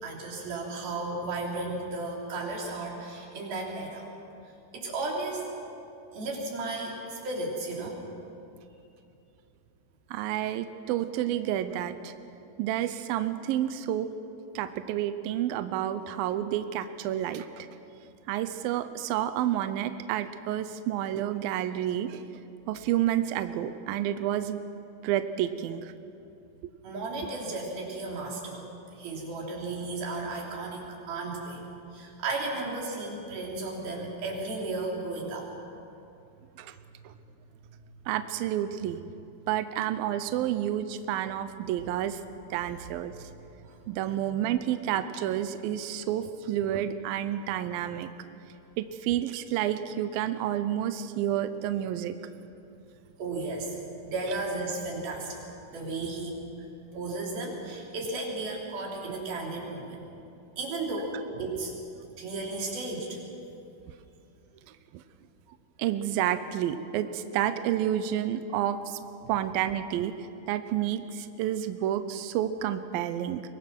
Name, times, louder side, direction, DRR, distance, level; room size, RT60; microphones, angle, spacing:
voice 1, 0.0-4.1 4.7-5.4 6.1-8.0 26.8-28.6 29.0-31.6 31.9-35.5 42.5-42.6 43.6-43.8 53.2-53.8 54.0-55.4 55.7-56.4 56.9-60.0 60.6-61.7 62.2-63.2 69.2-69.3, right 2 dB, 60° right, -2 dB, 5.2 m, -34 dB
voice 2, 10.1-12.1 12.6-14.1 14.6-17.7 18.3-22.2 22.7-24.6 25.0-25.9 36.6-36.7 38.1-39.0 39.5-42.2 42.5-43.1 43.9-48.1 48.8-52.1 64.9-65.0 65.8-69.0 69.3-70.1 70.5-73.4, right 11 dB, 80° right, 10 dB, 2.1 m, -30 dB
24.0 x 22.0 x 6.1 m, 2.7 s
omnidirectional pair, 5.0 m